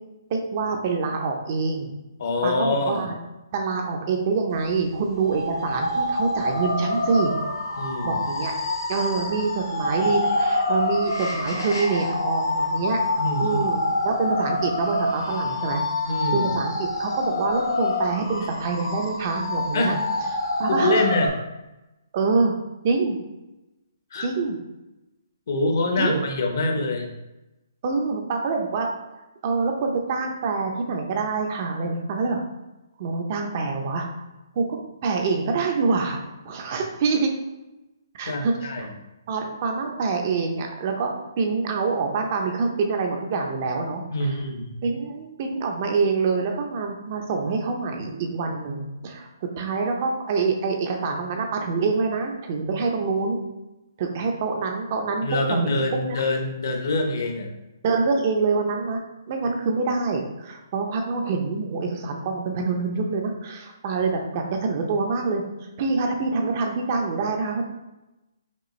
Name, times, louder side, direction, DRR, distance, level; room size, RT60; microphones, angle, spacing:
voice 1, 0.3-1.9 2.4-3.2 3.5-7.3 8.0-8.5 8.9-13.0 13.4-15.8 16.3-20.0 20.6-21.1 22.1-22.6 22.8-23.2 24.2-24.6 26.0-26.2 27.8-28.9 29.4-32.4 33.0-34.1 34.5-36.2 36.5-37.3 38.2-38.5 38.8-38.9 39.3-44.3 44.8-49.3 49.6-53.4 54.0-55.8 56.1-56.2 57.8-59.0 59.3-65.4 65.8-67.6, right 4 dB, 35° right, 3 dB, 0.5 m, -26 dB
voice 2, 2.2-3.1 7.8-8.2 13.2-13.6 16.1-16.5 19.7-19.9 20.7-21.3 24.1-24.3 25.5-27.1 38.2-38.9 44.1-44.8 55.2-57.5, left 2 dB, 55° left, 3 dB, 0.7 m, -25 dB
sound 1, 5.2-21.3, left 2 dB, 85° left, 1.1 m, -26 dB
5.2 x 2.4 x 3.1 m, 0.99 s
hypercardioid pair, 160°, 2 cm